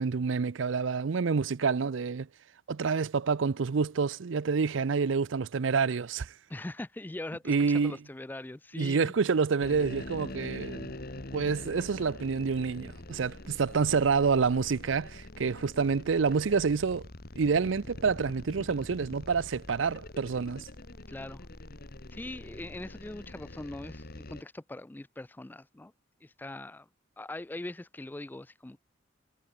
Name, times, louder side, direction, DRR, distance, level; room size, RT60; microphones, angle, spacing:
voice 1, 0.0-2.3 2.7-6.3 7.5-8.0 8.8-10.9 11.3-17.1 17.4-20.7, right 5 dB, 75° right, 0.5 m, -28 dB
voice 2, 6.5-9.1 21.1-21.5 22.1-25.9 26.2-26.9 27.2-28.8, left 2 dB, 10° left, 0.3 m, -41 dB
sound 1, 9.6-24.4, left 1 dB, 50° left, 2.0 m, -44 dB
head